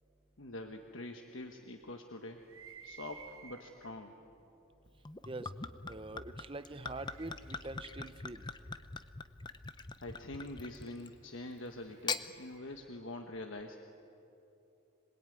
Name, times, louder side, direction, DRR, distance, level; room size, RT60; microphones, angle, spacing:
voice 1, 0.4-2.4 2.8-4.1 10.0-13.8, left 2 dB, 65° left, 4 dB, 1.3 m, -45 dB
sound 1, 2.4-4.0 4.9-5.0 6.3-9.2 11.2-13.0, right 7 dB, 70° right, 1.3 m, -56 dB
Gurgling / Chink clink / Liquid, 5.1-11.2 11.9-12.3, left 4 dB, 20° left, 0.7 m, -42 dB
voice 2, 5.9-8.4, right 2 dB, 25° right, 11 dB, 0.8 m, -44 dB
26.0 x 21.0 x 9.3 m, 2.9 s
head